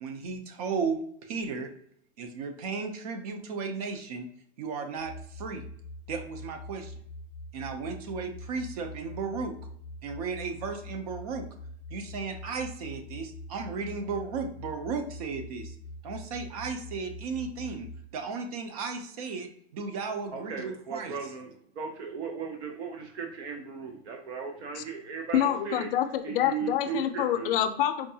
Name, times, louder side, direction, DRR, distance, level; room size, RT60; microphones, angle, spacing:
voice 1, 0.0-1.7 2.2-4.3 4.6-5.6 6.1-6.9 7.5-9.6 10.0-11.5 11.9-15.7 16.0-17.9 18.1-21.3, right 5 dB, 35° right, 7 dB, 0.4 m, -35 dB
sound 1, 4.9-18.0, left 1 dB, 55° right, 1.3 m, -44 dB
voice 2, 20.3-25.9 26.2-27.5, right 6 dB, 85° right, 2 dB, 0.7 m, -37 dB
voice 3, 25.3-28.1, left 11 dB, 60° left, 9 dB, 0.5 m, -27 dB
4.5 x 2.3 x 2.7 m, 0.66 s
supercardioid pair, 170°, 32 cm